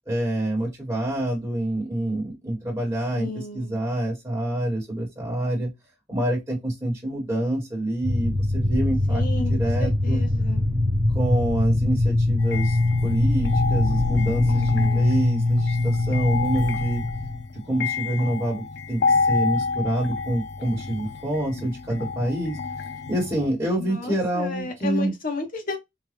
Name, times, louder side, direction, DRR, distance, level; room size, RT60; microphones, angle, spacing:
voice 1, 0.1-5.7 6.1-10.2 11.1-17.0 17.7-18.6 18.9-22.6 23.1-25.1, right 1 dB, 20° right, 1.5 m, -26 dB
voice 2, 3.1-3.8 9.1-10.6 14.5-15.1 23.8-25.8, left 3 dB, 50° left, 1.2 m, -33 dB
sound 1, 8.0-17.4, left 2 dB, 15° left, 1.2 m, -22 dB
sound 2, 12.4-23.5, left 4 dB, 65° left, 0.5 m, -29 dB
3.8 x 2.5 x 3.4 m
head